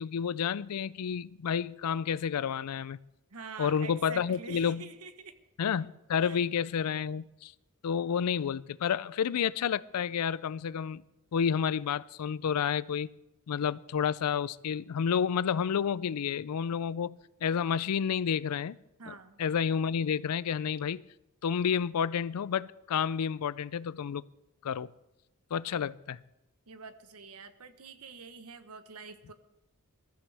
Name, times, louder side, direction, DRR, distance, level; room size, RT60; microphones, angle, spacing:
voice 1, 0.0-3.0 3.6-4.8 5.6-7.5 7.8-11.0 11.3-13.1 13.5-18.8 19.1-21.0 21.4-24.2 24.6-24.9 25.5-26.2, left 7 dB, 90° left, 0.4 m, -30 dB
voice 2, 3.3-5.4 6.2-6.4 19.0-19.4 25.7-25.8 26.7-29.3, right 5 dB, 80° right, 1.2 m, -46 dB
21.5 x 14.0 x 3.4 m
head